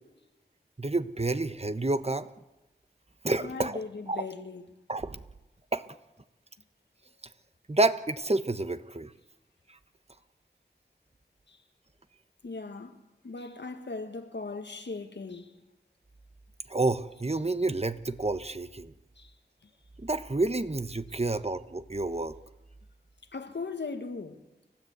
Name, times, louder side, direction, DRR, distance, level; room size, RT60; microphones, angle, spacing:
voice 1, 0.8-2.3 3.2-3.8 4.1-4.2 4.9-5.2 5.7-5.8 7.7-9.1 9.7-9.8 16.7-18.9 20.0-22.4, right 2 dB, 35° right, 1.1 m, -29 dB
voice 2, 3.4-4.6 11.5-11.6 12.4-13.0 13.2-15.5 19.2-19.3 19.6-19.7 23.3-24.4, left 4 dB, 90° left, 1.7 m, -38 dB
29.5 x 13.5 x 8.1 m
wide cardioid pair, 40°, 18 cm